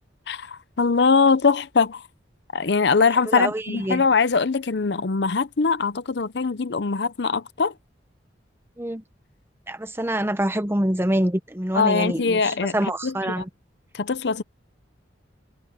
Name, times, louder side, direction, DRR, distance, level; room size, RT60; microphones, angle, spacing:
voice 1, 0.3-2.1 2.5-7.7 11.7-13.4 13.9-14.4, left 4 dB, 60° left, 0.7 m, -22 dB
voice 2, 3.3-4.0 8.8-9.0 9.7-13.5, right 1 dB, 15° right, 0.9 m, -25 dB
head